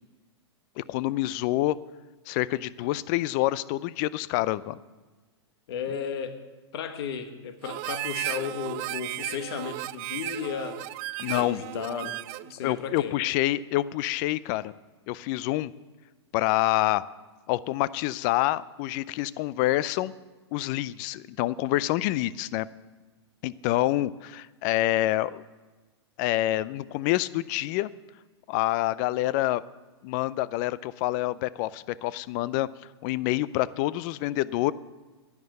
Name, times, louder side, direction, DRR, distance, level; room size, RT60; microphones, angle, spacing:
voice 1, 0.8-1.8 2.3-4.8 11.2-11.6 12.6-14.7 15.1-15.7 16.3-17.0 17.5-20.1 20.5-22.7 23.4-25.4 26.2-27.9 28.5-29.6 30.0-32.7 33.0-34.7, left 16 dB, 45° left, 19 dB, 0.5 m, -27 dB
voice 2, 5.7-6.4 6.7-10.8 11.4-13.2, left 7 dB, 65° left, 8 dB, 1.5 m, -34 dB
Harmonica, 7.6-12.5, right 18 dB, 40° right, 0.4 m, -35 dB
11.0 x 9.6 x 7.8 m, 1.2 s
hypercardioid pair, 115°, 14 cm